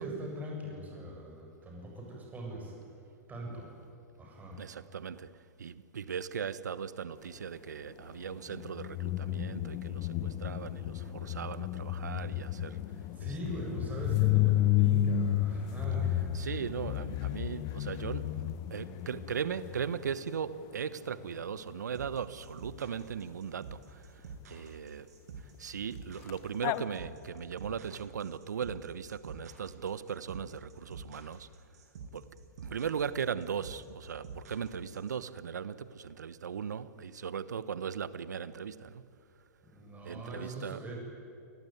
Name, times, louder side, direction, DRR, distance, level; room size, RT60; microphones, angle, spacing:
voice 1, 0.0-2.7 3.3-3.7 4.2-4.6 13.1-16.1 39.6-40.9, right 1 dB, 15° right, 7.9 m, -41 dB
voice 2, 4.6-5.3 5.6-12.8 16.3-23.8 24.5-25.1 25.6-31.5 32.1-32.2 32.6-39.0 40.0-40.8, right 7 dB, 85° right, 1.1 m, -38 dB
sound 1, 8.5-20.1 26.3-26.4 26.6-26.8, left 12 dB, 40° left, 1.1 m, -31 dB
sound 2, 21.9-35.1, right 5 dB, 70° right, 7.2 m, -46 dB
28.0 x 18.5 x 9.4 m
hypercardioid pair, 120°, 9 cm